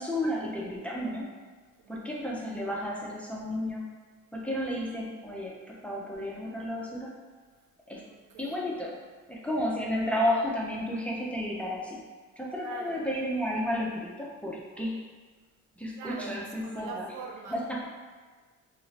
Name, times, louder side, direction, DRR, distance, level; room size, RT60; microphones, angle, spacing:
voice 1, 0.0-1.3 1.9-3.9 4.3-7.2 7.9-8.0 8.4-9.0 9.3-12.0 12.4-15.0 15.8-17.1 17.5-17.9, left 1 dB, 5° left, -4 dB, 0.5 m, -32 dB
voice 2, 8.1-8.7 12.6-13.0 15.9-17.6, right 4 dB, 80° right, 0 dB, 0.5 m, -43 dB
2.6 x 2.4 x 3.1 m, 1.4 s
cardioid pair, 90°, 30 cm